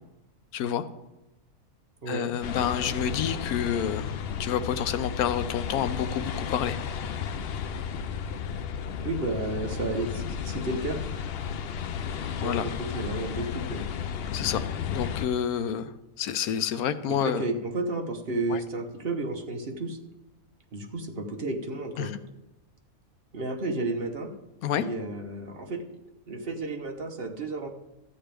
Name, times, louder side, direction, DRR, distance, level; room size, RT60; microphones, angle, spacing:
voice 1, 0.5-0.9 2.1-6.8 12.4-12.7 14.3-14.6 14.9-17.4 18.5-18.6 22.0-22.1 24.6-24.8, left 9 dB, 85° left, 11 dB, 1.1 m, -29 dB
voice 2, 2.0-2.3 9.0-11.0 12.4-13.8 17.1-20.0 20.7-22.1 23.3-24.3 24.7-25.8 26.3-27.7, right 2 dB, 45° right, 3 dB, 1.2 m, -32 dB
sound 1, 2.4-15.3, left 7 dB, 65° left, 0.6 m, -33 dB
13.5 x 8.8 x 3.4 m, 0.98 s
omnidirectional pair, 1.5 m